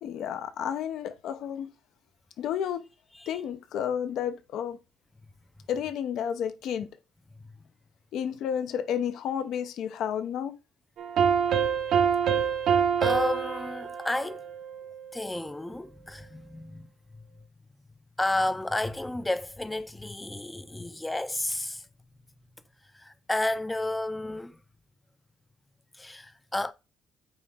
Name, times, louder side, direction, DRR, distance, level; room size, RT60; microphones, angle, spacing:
voice 1, 0.0-1.7 2.4-2.8 3.3-4.8 5.7-6.9 8.1-10.5, left 9 dB, 70° left, 0.8 m, -31 dB
sound 1, 11.0-15.2, right 7 dB, 65° right, 0.9 m, -26 dB
voice 2, 13.0-14.4 15.1-16.9 18.2-21.8 22.9-24.6 26.0-26.7, left 1 dB, 10° left, 0.6 m, -31 dB
8.9 x 3.0 x 3.7 m
cardioid pair, 95°, 0 cm